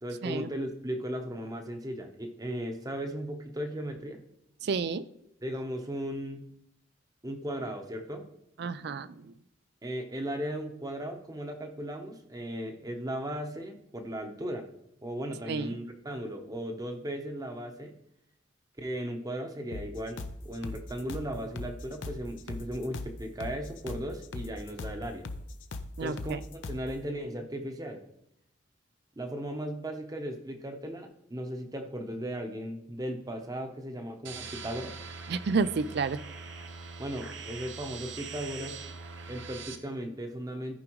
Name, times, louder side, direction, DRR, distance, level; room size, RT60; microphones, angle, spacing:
voice 1, 0.0-4.2 5.4-6.5 7.2-8.3 9.8-14.7 15.0-17.9 18.8-25.3 26.0-28.0 29.2-35.0 37.0-38.8 39.3-40.8, equal, 20° right, 5 dB, 0.9 m, -36 dB
voice 2, 4.6-5.0 8.6-9.1 15.5-15.7 26.0-26.4 35.3-36.2, right 4 dB, 60° right, 15 dB, 0.4 m, -30 dB
sound 1, 19.7-26.9, left 2 dB, 80° left, 0.6 m, -40 dB
sound 2, 34.2-39.8, right 5 dB, 80° right, 0.8 m, -42 dB
14.0 x 5.0 x 3.1 m, 0.76 s
head